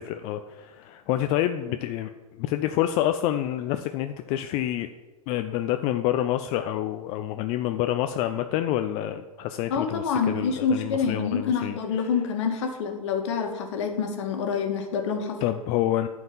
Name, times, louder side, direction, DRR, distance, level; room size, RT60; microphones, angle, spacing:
voice 1, 0.0-2.1 2.4-4.9 5.3-11.8 15.4-16.1, left 12 dB, 30° left, 8 dB, 0.4 m, -27 dB
voice 2, 9.7-15.4, left 6 dB, 55° left, 4 dB, 1.7 m, -27 dB
10.5 x 4.6 x 7.3 m, 1.3 s
figure-of-eight pair, 110°, 19 cm